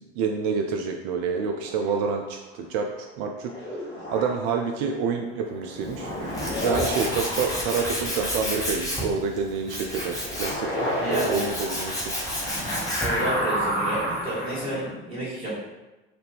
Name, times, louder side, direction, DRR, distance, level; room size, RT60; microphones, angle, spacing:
voice 1, 0.2-3.5 4.1-6.1 6.6-10.7 11.1-12.1, right 5 dB, 55° right, 3 dB, 0.4 m, -28 dB
sound 1, 1.3-2.1 3.4-4.9 5.4-9.4 9.8-14.9, equal, 50° left, 1.5 m, -31 dB
Tools, 5.8-13.3, equal, 10° left, 1.3 m, -32 dB
voice 2, 11.0-11.3 13.0-15.5, right 1 dB, 90° right, -8 dB, 1.3 m, -30 dB
4.1 x 2.6 x 3.5 m, 1.1 s
figure-of-eight pair, 55°, 31 cm